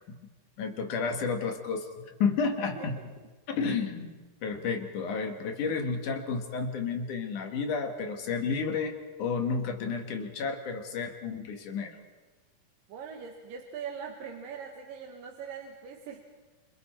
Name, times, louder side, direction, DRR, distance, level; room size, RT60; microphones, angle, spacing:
voice 1, 0.6-1.9 2.2-3.0 3.5-4.1 4.4-12.0, left 5 dB, 65° left, 5 dB, 3.1 m, -31 dB
voice 2, 12.9-16.2, right 6 dB, 75° right, 2 dB, 3.2 m, -41 dB
28.0 x 26.5 x 4.5 m, 1.3 s
omnidirectional pair, 4.0 m